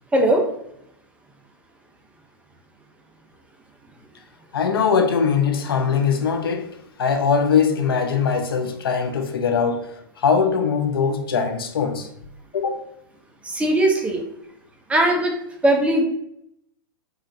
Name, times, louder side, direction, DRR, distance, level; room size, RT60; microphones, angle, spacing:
voice 1, 0.1-0.4 13.4-14.2 14.9-15.3 15.6-16.0, right 1 dB, 10° right, 1 dB, 0.5 m, -19 dB
voice 2, 4.5-6.7 7.0-9.9 10.2-12.1 12.5-12.8, left 6 dB, 85° left, 5 dB, 0.6 m, -21 dB
4.1 x 2.5 x 2.5 m, 0.76 s
hypercardioid pair, 125°, 12 cm